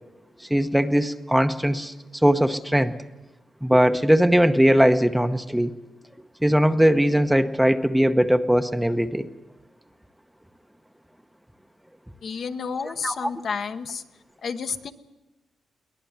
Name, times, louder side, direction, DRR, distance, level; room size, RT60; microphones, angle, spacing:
voice 1, 0.5-1.9 2.2-3.0 3.6-5.8 6.4-9.3 13.0-13.3, equal, 5° right, 8 dB, 0.8 m, -20 dB
voice 2, 12.2-14.0 14.4-14.9, left 6 dB, 55° left, 7 dB, 1.1 m, -31 dB
22.0 x 19.0 x 8.1 m, 1.1 s
cardioid pair, 115°, 0 cm